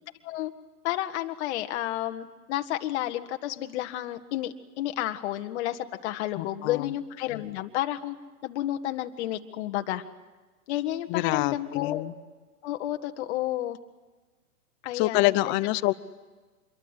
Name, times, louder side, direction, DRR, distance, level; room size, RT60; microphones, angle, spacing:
voice 1, 0.8-8.2 8.4-10.0 10.7-12.0 12.6-13.8 14.8-15.3, left 14 dB, 45° left, 6 dB, 1.6 m, -31 dB
voice 2, 6.3-6.9 11.1-12.1 14.9-15.9, left 19 dB, 25° left, 16 dB, 0.8 m, -26 dB
26.5 x 23.0 x 8.2 m, 1.3 s
hypercardioid pair, 125°, 46 cm